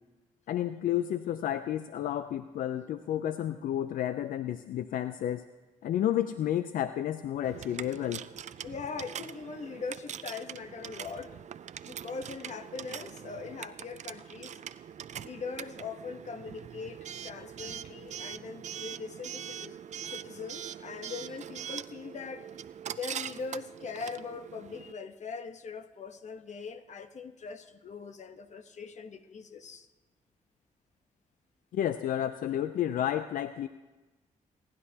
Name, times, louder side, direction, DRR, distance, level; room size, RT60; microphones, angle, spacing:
voice 1, 0.5-5.4 5.8-8.2 31.7-33.7, left 11 dB, 85° left, 11 dB, 0.4 m, -31 dB
Coin (dropping) / Alarm, 7.4-24.9, right 9 dB, 55° right, 0.4 m, -43 dB
voice 2, 8.6-11.4 11.8-14.6 15.2-19.8 20.0-22.5 23.0-29.9, left 5 dB, 55° left, 9 dB, 1.0 m, -41 dB
27.0 x 11.0 x 2.8 m, 1.2 s
cardioid pair, 80°, 14 cm